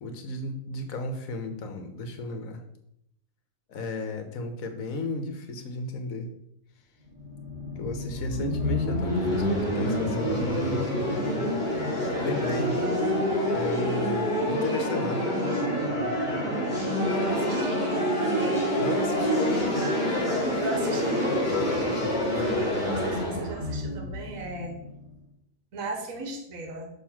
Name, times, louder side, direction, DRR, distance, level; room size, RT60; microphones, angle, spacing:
voice 1, 0.0-2.6 3.7-6.3 7.7-10.8 12.2-12.8 13.5-15.2 18.8-19.8, left 2 dB, 70° left, 6 dB, 1.3 m, -34 dB
sound 1, 7.2-25.0, equal, 30° left, 1.9 m, -27 dB
voice 2, 17.0-18.0 18.9-19.1 20.2-21.8 22.3-24.7 25.7-26.9, right 2 dB, 65° right, 3 dB, 1.6 m, -37 dB
6.7 x 3.4 x 5.8 m, 0.75 s
omnidirectional pair, 1.5 m